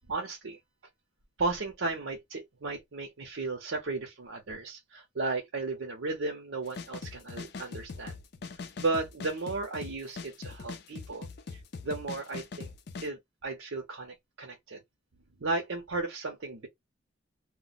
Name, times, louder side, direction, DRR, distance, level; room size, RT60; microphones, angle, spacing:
voice 1, 0.1-0.6 1.4-8.2 8.8-12.7 13.0-14.8 15.4-16.7, right 3 dB, 75° right, 0.7 m, -35 dB
sound 1, 6.7-13.1, left 4 dB, 55° left, 0.4 m, -42 dB
2.2 x 2.1 x 3.8 m
head